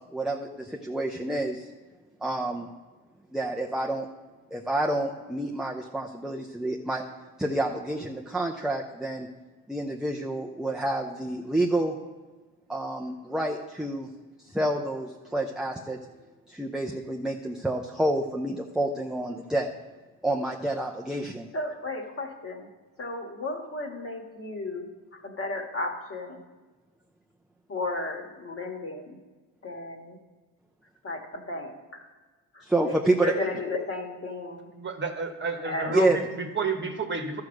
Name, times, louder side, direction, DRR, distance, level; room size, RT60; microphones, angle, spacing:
voice 1, 0.1-1.6 2.2-2.7 3.3-4.1 4.5-7.0 7.4-9.3 9.7-12.0 12.7-14.1 14.5-16.0 16.5-19.7 20.2-21.5 32.7-33.3 35.9-36.2, right 1 dB, ahead, 0 dB, 0.6 m, -28 dB
voice 2, 21.5-22.7 23.0-26.4 27.7-29.2 29.6-30.2 31.0-32.0 32.5-34.7 35.6-36.0, left 2 dB, 35° left, 3 dB, 1.7 m, -34 dB
voice 3, 34.7-37.4, right 4 dB, 30° right, 4 dB, 1.3 m, -30 dB
13.0 x 4.8 x 6.5 m, 1.3 s
cardioid pair, 105°, 39 cm